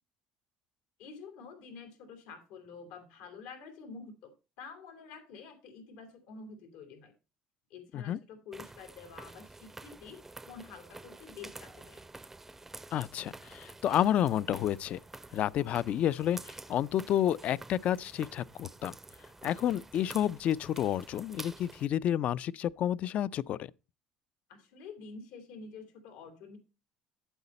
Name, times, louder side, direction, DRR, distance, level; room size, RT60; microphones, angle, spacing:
voice 1, 1.0-4.3 4.6-7.1 7.7-10.2 10.5-12.0 24.5-26.6, left 5 dB, 85° left, 2.9 m, -48 dB
sound 1, 8.5-21.9, right 2 dB, 10° right, 0.5 m, -49 dB
voice 2, 12.9-15.0 15.3-19.0 19.4-23.7, left 11 dB, 55° left, 0.4 m, -30 dB
8.8 x 8.1 x 4.2 m
cardioid pair, 110°, 3 cm